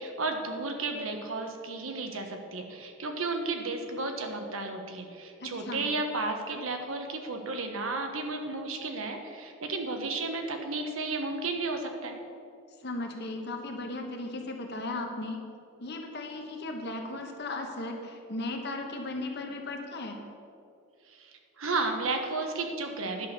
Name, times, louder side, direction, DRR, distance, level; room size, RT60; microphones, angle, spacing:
voice 1, 0.0-12.2 21.1-23.3, right 3 dB, 75° right, 4 dB, 1.2 m, -33 dB
voice 2, 5.4-5.9 12.8-15.4 15.8-20.2, left 2 dB, 50° left, 3 dB, 1.3 m, -36 dB
10.5 x 6.2 x 6.8 m, 2.5 s
head